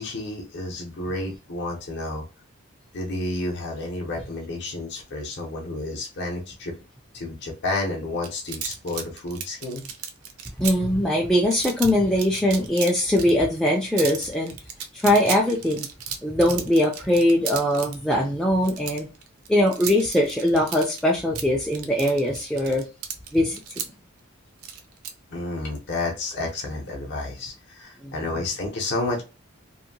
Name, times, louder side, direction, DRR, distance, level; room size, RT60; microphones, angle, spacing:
voice 1, 0.0-2.2 2.9-6.7 7.1-9.8 25.3-29.2, left 2 dB, 50° left, 0.7 m, -30 dB
sound 1, 8.2-10.7 11.5-11.9 12.2-13.3 13.6-13.7 14.0-18.0 18.6-21.0 21.4-23.9 24.6-25.1, right 8 dB, 80° right, 0.5 m, -33 dB
voice 2, 10.6-14.6 14.9-15.9 16.2-19.1 19.5-22.8 23.3-23.6 28.0-28.1, left 1 dB, 5° left, 0.3 m, -21 dB
2.7 x 2.5 x 2.6 m
head